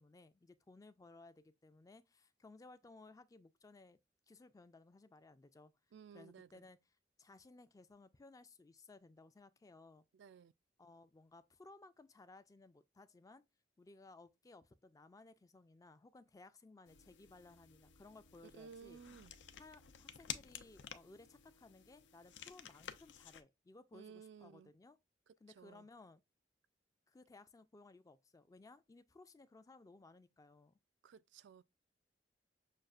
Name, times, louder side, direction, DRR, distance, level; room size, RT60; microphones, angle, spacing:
voice 1, 0.0-4.0 4.3-5.7 6.1-6.8 7.2-10.1 10.8-13.4 13.8-19.0 19.6-25.0 25.4-26.2 27.1-30.7, left 3 dB, 20° left, 0.3 m, -60 dB
voice 2, 5.9-6.6 10.1-10.5 18.6-19.3 23.9-24.7 25.3-25.9 31.0-31.6, right 6 dB, 80° right, 0.3 m, -56 dB
sound 1, 16.9-23.4, left 9 dB, 85° left, 0.5 m, -52 dB
6.4 x 2.4 x 2.3 m
head